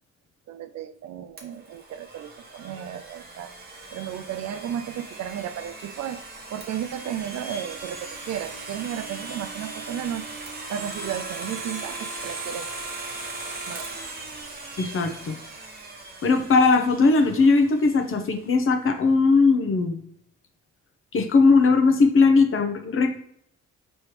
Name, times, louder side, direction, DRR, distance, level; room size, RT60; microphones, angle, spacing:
voice 1, 0.5-3.5 3.9-6.2 6.5-10.3 10.7-12.7 13.7-14.0, right 10 dB, 60° right, 11 dB, 0.4 m, -34 dB
Domestic sounds home sounds, 1.4-18.1, right 2 dB, 30° right, 1.1 m, -38 dB
voice 2, 14.8-15.3 16.2-20.0 21.1-23.2, left 4 dB, 45° left, 7 dB, 0.7 m, -19 dB
4.7 x 3.1 x 3.0 m, 0.71 s
cardioid pair, 90°, 30 cm